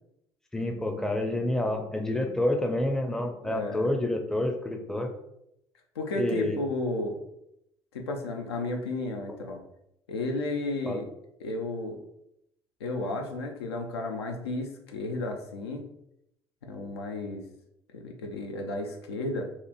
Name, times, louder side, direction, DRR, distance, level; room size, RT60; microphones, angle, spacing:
voice 1, 0.5-5.1 6.1-6.6 10.9-11.0, left 1 dB, 5° left, 3 dB, 0.4 m, -28 dB
voice 2, 3.4-3.9 6.0-7.2 7.9-9.6 10.1-11.0 11.4-12.0 12.8-15.9 16.6-17.5 17.9-19.5, left 2 dB, 80° left, 3 dB, 0.4 m, -33 dB
2.9 x 2.5 x 2.3 m, 0.80 s
figure-of-eight pair, 55°, 13 cm